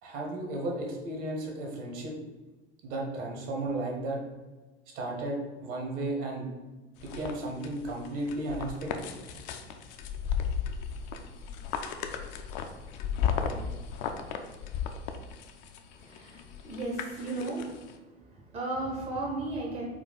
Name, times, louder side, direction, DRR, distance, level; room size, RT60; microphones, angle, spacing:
voice 1, 0.0-2.2 2.8-4.2 4.9-6.5 7.0-8.9, right 2 dB, 50° right, 0 dB, 1.2 m, -34 dB
sound 1, 7.0-17.9, left 7 dB, 45° left, 0.4 m, -35 dB
voice 2, 16.1-17.7 18.5-19.9, right 2 dB, 20° right, -2 dB, 0.7 m, -34 dB
4.5 x 2.3 x 3.9 m, 1.2 s
figure-of-eight pair, 80°, 34 cm